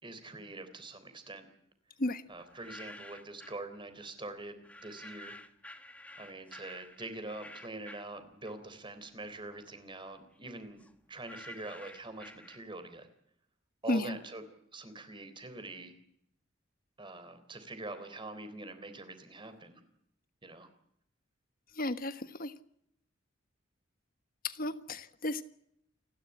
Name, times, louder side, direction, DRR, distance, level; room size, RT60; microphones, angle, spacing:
voice 1, 0.0-1.5 2.3-5.4 6.2-10.8 11.1-13.1 13.8-14.4 14.7-15.9 17.0-19.8 20.4-20.7, right 2 dB, 25° right, 3.6 m, -44 dB
sound 1, 2.4-3.7 4.6-8.9 9.2-13.0, left 1 dB, 5° left, 1.5 m, -51 dB
voice 2, 21.7-22.5 24.4-25.4, left 2 dB, 45° left, 1.4 m, -33 dB
29.0 x 12.0 x 9.9 m
head